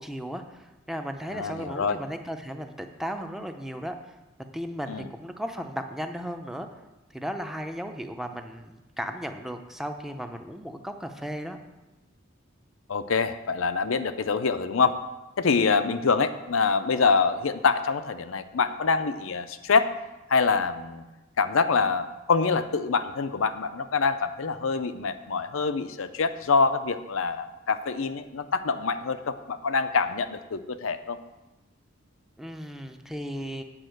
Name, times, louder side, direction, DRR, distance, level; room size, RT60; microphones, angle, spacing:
voice 1, 0.0-4.1 4.5-6.7 7.1-11.6 32.4-33.6, equal, ahead, 6 dB, 0.6 m, -35 dB
voice 2, 1.3-2.0 4.9-5.1 12.9-15.0 15.4-19.9 20.3-21.0 21.4-31.2, left 4 dB, 90° left, 10 dB, 0.6 m, -25 dB
8.7 x 5.4 x 7.8 m, 1.1 s
head